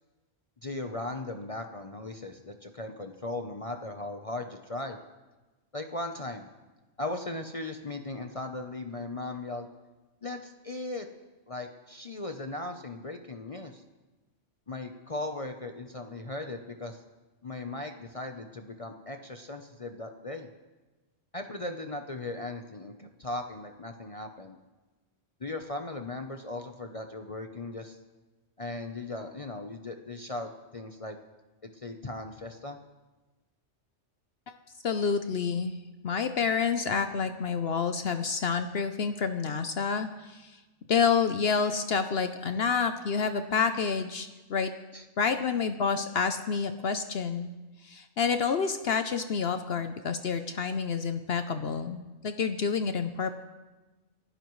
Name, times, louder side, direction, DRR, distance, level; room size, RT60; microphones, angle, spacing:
voice 1, 0.6-5.0 5.7-6.5 7.0-9.7 10.2-11.1 11.5-13.8 14.7-17.0 17.4-20.5 21.3-24.6 25.4-28.0 28.6-31.2 31.7-32.8 44.9-45.0, left 2 dB, 35° left, 5 dB, 0.7 m, -38 dB
voice 2, 34.8-35.8 36.0-40.6 40.9-44.7 45.2-47.5 47.8-53.4, left 5 dB, 60° left, 8 dB, 0.9 m, -28 dB
30.0 x 12.0 x 3.2 m, 1.2 s
omnidirectional pair, 1.3 m